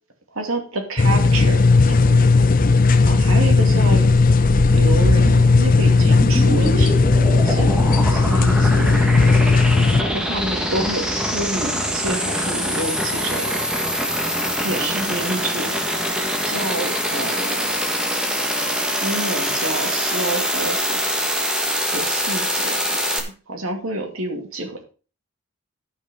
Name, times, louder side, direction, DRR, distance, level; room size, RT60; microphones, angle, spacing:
voice 1, 0.3-2.2 3.0-4.1 4.7-8.9 10.0-13.6 14.6-15.7 16.4-17.7 19.0-21.3 21.9-24.8, right 2 dB, 85° right, 4 dB, 2.6 m, -29 dB
sound 1, 1.0-10.0, left 3 dB, 40° left, 0.6 m, -15 dB
sound 2, 4.0-23.2, equal, 5° right, 1.4 m, -24 dB
11.5 x 6.0 x 5.5 m, 0.36 s
head